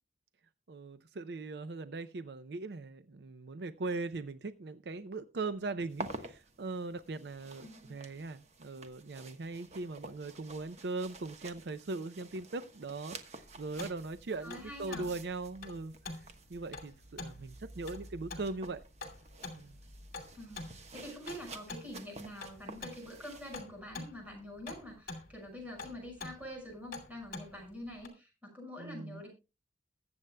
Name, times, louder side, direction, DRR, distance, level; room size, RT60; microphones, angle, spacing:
voice 1, 0.7-16.2 16.5-18.8 19.5-19.8 28.8-29.2, right 3 dB, 65° right, 12 dB, 0.5 m, -40 dB
sound 1, 5.9-23.6, right 3 dB, 40° right, 1.2 m, -51 dB
sound 2, 13.8-28.1, left 2 dB, 55° left, 2.6 m, -47 dB
voice 2, 14.4-15.1 20.3-20.6 20.9-29.3, equal, 10° right, -1 dB, 5.9 m, -46 dB
22.0 x 7.9 x 2.2 m, 0.28 s
head